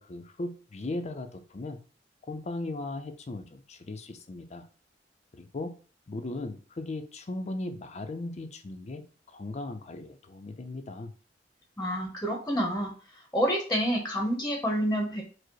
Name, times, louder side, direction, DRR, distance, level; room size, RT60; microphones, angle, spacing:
voice 1, 0.0-1.8 2.3-4.7 5.3-5.7 6.1-9.0 9.3-11.1, left 2 dB, 35° left, 8 dB, 0.5 m, -37 dB
voice 2, 11.8-12.9 13.3-15.2, equal, 10° left, 1 dB, 0.8 m, -28 dB
4.7 x 2.1 x 4.5 m, 0.39 s
head